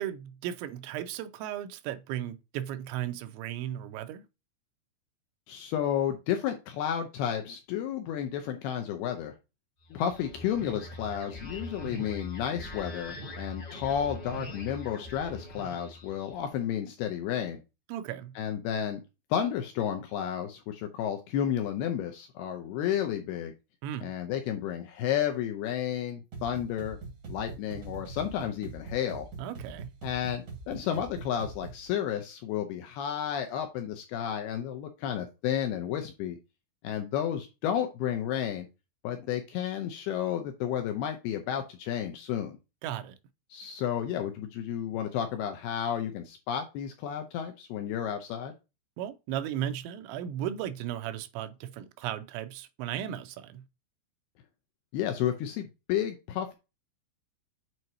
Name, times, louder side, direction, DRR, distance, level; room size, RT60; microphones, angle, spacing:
voice 1, 0.0-4.2 17.9-18.4 23.8-24.1 29.4-29.9 42.8-43.2 49.0-53.6, right 11 dB, 90° right, 2.9 m, -36 dB
voice 2, 5.5-9.3 9.9-17.6 18.4-19.0 19.3-23.5 24.0-27.0 27.3-29.3 30.0-36.4 36.8-38.7 39.0-42.6 43.5-48.5 54.9-56.5, left 9 dB, 80° left, 2.4 m, -32 dB
sound 1, 9.8-16.5, left 1 dB, 45° left, 1.3 m, -42 dB
sound 2, 26.3-31.9, right 4 dB, 65° right, 1.3 m, -43 dB
7.7 x 4.6 x 2.8 m
omnidirectional pair, 5.2 m